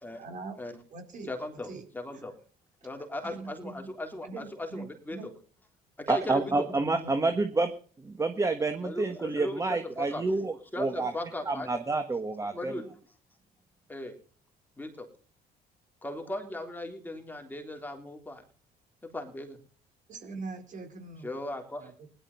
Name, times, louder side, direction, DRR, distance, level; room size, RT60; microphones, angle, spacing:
voice 1, 0.2-0.6 0.9-1.3 1.7-1.8 3.3-3.9 4.2-5.3 6.4-7.2 20.1-21.3 21.8-22.1, right 3 dB, 50° right, 5 dB, 4.2 m, -42 dB
voice 2, 1.3-2.3 2.8-5.2 6.0-6.7 8.8-10.2 10.7-11.7 12.4-12.8 13.9-14.1 14.8-15.1 16.0-18.4 19.1-19.6 21.2-21.9, left 1 dB, 10° left, 4 dB, 3.5 m, -37 dB
voice 3, 6.1-7.7 8.0-11.1 11.5-12.7, right 3 dB, 20° right, 8 dB, 1.4 m, -28 dB
17.5 x 11.5 x 5.6 m, 0.42 s
cardioid pair, 110°, 17 cm